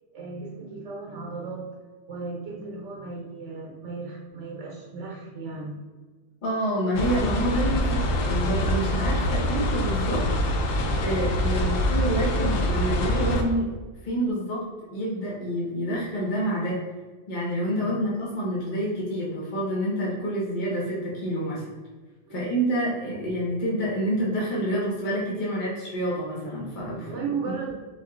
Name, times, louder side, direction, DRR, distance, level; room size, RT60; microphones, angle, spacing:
voice 1, 0.1-1.8 2.1-5.8 11.5-11.8 17.7-18.0 22.3-22.5 27.0-27.7, right 4 dB, 65° right, -1 dB, 1.0 m, -35 dB
voice 2, 6.4-10.2 11.0-13.7 14.0-14.6 14.9-16.8 17.3-21.6 22.3-27.2, right 1 dB, 40° left, -6 dB, 1.1 m, -28 dB
sound 1, 6.9-13.4, left 1 dB, 85° left, 1.0 m, -25 dB
4.3 x 2.9 x 3.7 m, 1.3 s
omnidirectional pair, 1.3 m